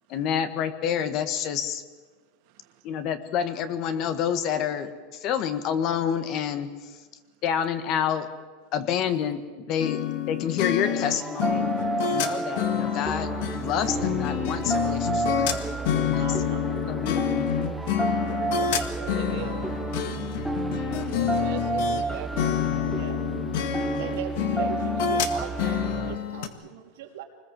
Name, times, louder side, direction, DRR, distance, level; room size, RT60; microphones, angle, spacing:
voice 1, 0.1-1.8 2.8-6.9 7.4-8.3 8.7-10.0 10.3-11.7 12.1-13.3 13.6-15.8 16.1-17.5, left 8 dB, 40° left, 1.6 m, -28 dB
sound 1, 9.8-22.0 22.4-26.5, left 11 dB, 65° left, 1.9 m, -28 dB
sound 2, 10.8-26.2, right 4 dB, 5° right, 1.0 m, -31 dB
voice 2, 16.1-16.8 18.2-18.5 20.1-20.6 22.8-23.3 24.0-27.2, right 9 dB, 85° right, 3.4 m, -40 dB
voice 3, 19.0-20.1 21.0-22.9, right 10 dB, 55° right, 2.4 m, -41 dB
25.5 x 20.5 x 7.6 m
supercardioid pair, 160°, 0 cm